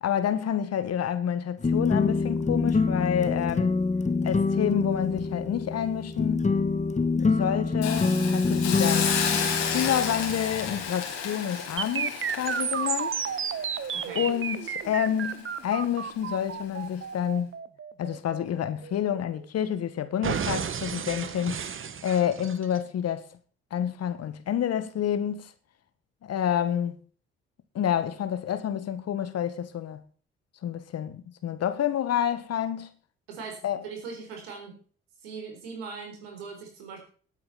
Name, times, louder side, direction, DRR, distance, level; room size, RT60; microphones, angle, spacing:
voice 1, 0.0-3.8 4.2-6.4 7.2-9.1 9.6-13.2 14.1-17.5 18.0-23.3 23.7-25.5 26.2-27.0 27.7-30.0 30.6-32.9 33.6-33.8, left 9 dB, 55° left, 1.6 m, -28 dB
sound 1, 1.6-10.9, left 4 dB, 25° left, 1.3 m, -26 dB
Hiss, 7.8-14.9 15.2-15.4, left 6 dB, 75° left, 3.4 m, -32 dB
sound 2, 11.8-19.7 20.2-22.8, right 7 dB, 45° right, 1.3 m, -32 dB
voice 2, 13.9-14.3 33.3-34.8 35.2-37.0, right 5 dB, 80° right, 4.0 m, -40 dB
17.5 x 8.8 x 4.2 m
hypercardioid pair, 45°, 30 cm